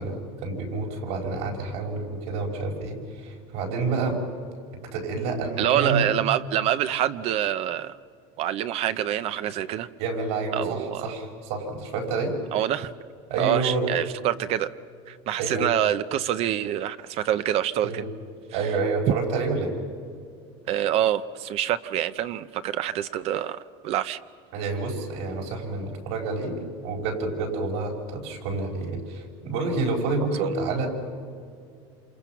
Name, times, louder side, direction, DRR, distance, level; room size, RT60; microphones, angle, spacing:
voice 1, 0.0-4.3 4.7-6.1 10.0-12.4 13.3-13.9 15.4-15.7 17.8-18.1 18.5-19.8 24.5-30.9, right 3 dB, 75° right, 1 dB, 5.2 m, -28 dB
voice 2, 5.6-8.0 8.4-9.9 10.5-11.1 12.5-12.9 13.4-14.7 15.1-18.0 20.7-24.2 30.4-30.5, right 11 dB, 45° right, 13 dB, 0.7 m, -26 dB
28.0 x 27.5 x 5.9 m, 2.4 s
cardioid pair, 155°, 14 cm